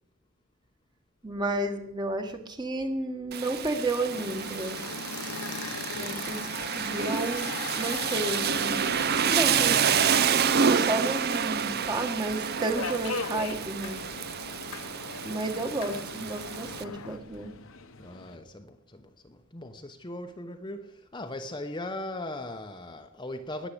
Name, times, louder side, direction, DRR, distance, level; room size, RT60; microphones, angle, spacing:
voice 1, 1.2-4.8 5.9-6.5 6.7-8.8 9.2-9.9 10.7-14.1 15.2-17.5, right 2 dB, 20° right, 1.4 m, -32 dB
Rain, 3.3-16.8, right 7 dB, 45° right, 0.6 m, -28 dB
sound 1, 4.1-17.2, left 5 dB, 90° left, 1.2 m, -40 dB
Subway metro underground, 8.5-18.4, left 4 dB, 65° left, 1.1 m, -43 dB
voice 2, 18.0-23.7, left 1 dB, 20° left, 0.8 m, -39 dB
20.0 x 7.4 x 8.4 m
head